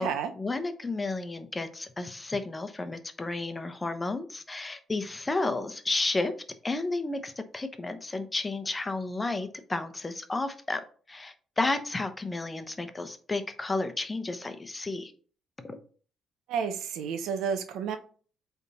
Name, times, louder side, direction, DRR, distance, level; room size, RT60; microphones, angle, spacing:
voice 1, 0.3-6.3 6.6-10.8 11.1-15.1 15.6-15.8, left 2 dB, 20° left, 9 dB, 0.9 m, -32 dB
voice 2, 16.5-18.0, right 7 dB, 85° right, 9 dB, 0.9 m, -31 dB
8.1 x 3.6 x 4.2 m, 0.42 s
cardioid pair, 90°, 0 cm